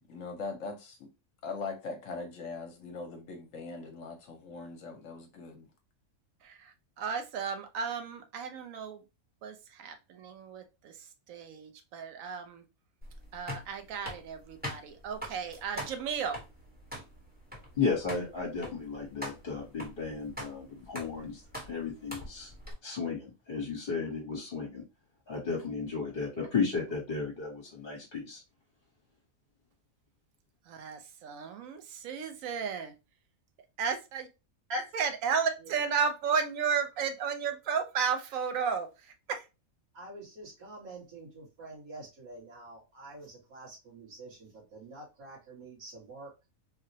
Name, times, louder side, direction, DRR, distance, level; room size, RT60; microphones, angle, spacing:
voice 1, 0.1-1.0 1.4-5.7, left 4 dB, 70° left, 1.0 m, -41 dB
voice 2, 6.4-9.0 9.4-12.6 13.3-16.4 30.7-32.9 33.8-34.3 34.9-39.5, right 6 dB, 75° right, 1.0 m, -34 dB
sound 1, 13.0-22.7, equal, 10° right, 0.9 m, -44 dB
voice 3, 17.8-21.4 21.7-22.5 22.8-24.8 25.3-28.4, left 5 dB, 45° left, 1.1 m, -34 dB
voice 4, 34.7-35.1 35.5-35.8 39.9-46.3, right 1 dB, 90° right, 2.0 m, -44 dB
3.9 x 2.1 x 2.7 m
omnidirectional pair, 1.5 m